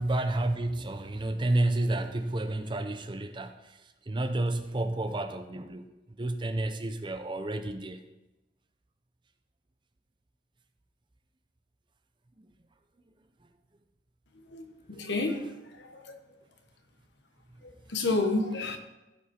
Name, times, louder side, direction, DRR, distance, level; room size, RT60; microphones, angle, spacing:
voice 1, 0.0-3.8 4.1-5.9 6.2-8.0, right 2 dB, 25° right, 0.6 m, -30 dB
voice 2, 14.5-16.2 17.6-18.8, left 2 dB, 75° left, 1.1 m, -31 dB
15.5 x 5.3 x 4.3 m
head